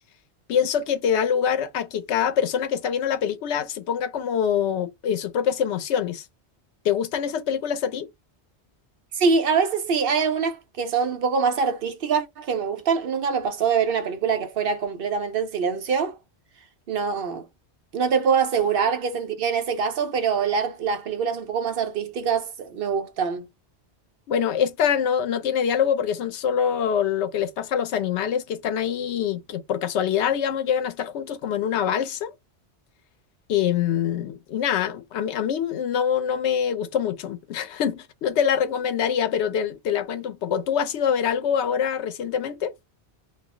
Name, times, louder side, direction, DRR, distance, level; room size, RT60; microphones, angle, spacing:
voice 1, 0.5-6.3 6.8-8.1 24.3-32.3 33.5-42.7, left 8 dB, 80° left, 0.9 m, -24 dB
voice 2, 9.1-16.2 16.9-17.4 17.9-23.5, right 6 dB, 65° right, 0.7 m, -24 dB
2.3 x 2.0 x 3.5 m
omnidirectional pair, 1.1 m